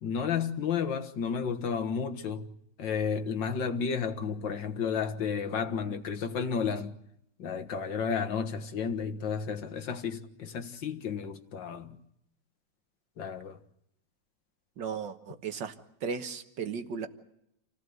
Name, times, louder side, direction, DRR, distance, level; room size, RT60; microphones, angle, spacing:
voice 1, 0.0-2.5 2.8-6.9 7.4-12.0 13.2-13.6, left 6 dB, 85° left, 2.2 m, -32 dB
voice 2, 14.8-15.7 16.0-17.1, right 6 dB, 90° right, 2.1 m, -35 dB
28.5 x 16.5 x 7.9 m
omnidirectional pair, 1.9 m